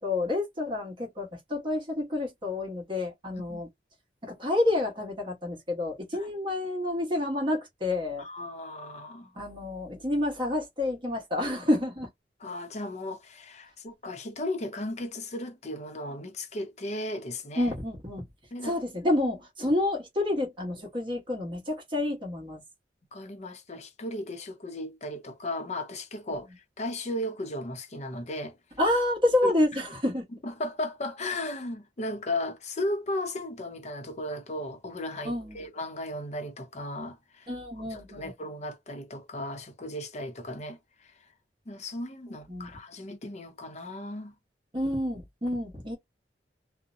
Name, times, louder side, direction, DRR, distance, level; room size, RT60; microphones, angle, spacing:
voice 1, 0.0-3.7 4.2-8.3 9.3-12.1 17.6-18.2 18.6-22.6 26.3-26.4 28.8-30.3 35.2-35.6 37.5-38.3 42.5-42.7 44.7-46.0, left 1 dB, 30° right, 1.0 m, -29 dB
voice 2, 8.2-9.3 12.4-17.7 18.5-18.8 23.1-26.5 26.8-28.6 29.4-29.5 30.4-37.5 37.9-40.8 41.7-44.3, left 1 dB, 40° left, 0.6 m, -35 dB
2.6 x 2.1 x 2.5 m
head